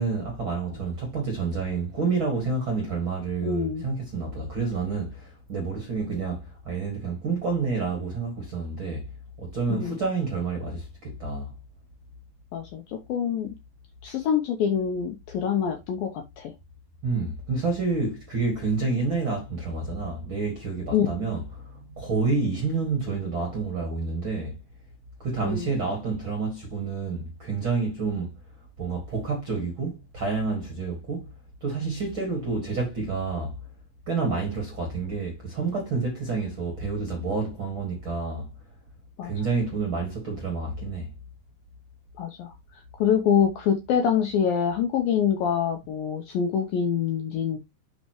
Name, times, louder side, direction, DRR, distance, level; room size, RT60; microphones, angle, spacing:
voice 1, 0.0-9.1 9.4-11.5 17.0-24.6 25.2-28.3 28.8-31.2 31.6-33.6 34.1-38.5 39.2-41.1, right 4 dB, 45° right, 1.6 m, -29 dB
voice 2, 3.4-3.9 9.7-10.0 12.5-13.5 14.0-16.5 20.9-21.2 25.4-25.7 39.2-39.3 42.2-47.6, left 8 dB, 75° left, 2.1 m, -25 dB
11.5 x 4.3 x 3.0 m
omnidirectional pair, 5.1 m